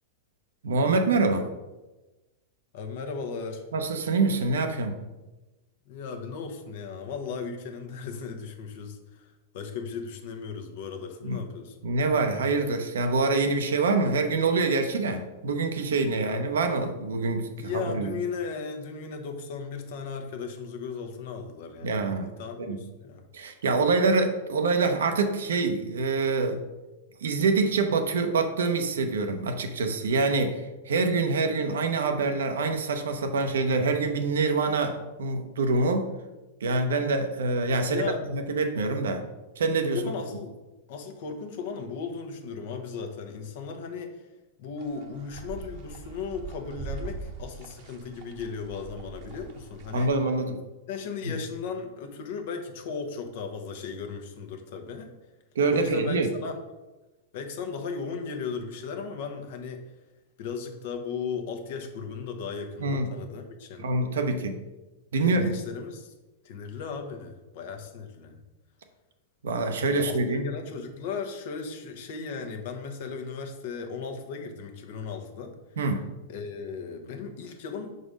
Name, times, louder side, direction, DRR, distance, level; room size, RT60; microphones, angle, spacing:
voice 1, 0.6-1.5 3.7-5.0 11.2-11.4 11.8-18.1 21.8-22.3 22.6-22.8 23.3-26.6 27.2-36.1 36.6-38.0 38.3-39.2 39.6-40.0 49.9-50.6 51.2-51.4 55.5-56.3 62.8-63.1 63.8-64.5 65.1-65.5 69.4-70.5 75.8-76.0, right 3 dB, 85° right, 6 dB, 0.8 m, -25 dB
voice 2, 2.7-3.6 5.9-11.8 16.2-16.3 17.6-23.3 37.7-38.2 39.9-40.6 40.9-44.3 44.6-50.1 50.9-55.1 55.7-56.6 57.3-59.9 60.4-63.9 65.2-66.1 66.4-68.4 69.9-75.5 76.3-77.9, left 5 dB, 65° left, 5 dB, 0.9 m, -36 dB
sound 1, 44.8-50.2, right 5 dB, 45° right, 0.9 m, -42 dB
4.9 x 4.0 x 5.2 m, 1.1 s
hypercardioid pair, 120°, 0 cm